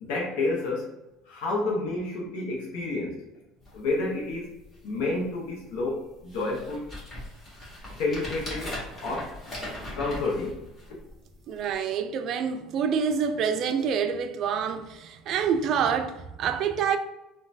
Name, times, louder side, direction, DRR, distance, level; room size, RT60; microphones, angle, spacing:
voice 1, 0.0-0.9 1.2-3.2 3.7-4.5 4.8-6.9 8.0-9.4 10.0-10.6, left 2 dB, 80° left, 0.7 m, -30 dB
sound 1, 3.6-3.8 4.3-4.4 4.6-5.1 5.7-5.8 6.3-11.1 11.7-11.8, left 1 dB, 25° left, 1.4 m, -39 dB
voice 2, 11.5-17.0, right 7 dB, 55° right, 0.3 m, -27 dB
3.0 x 2.2 x 2.6 m
supercardioid pair, 110°, 0 cm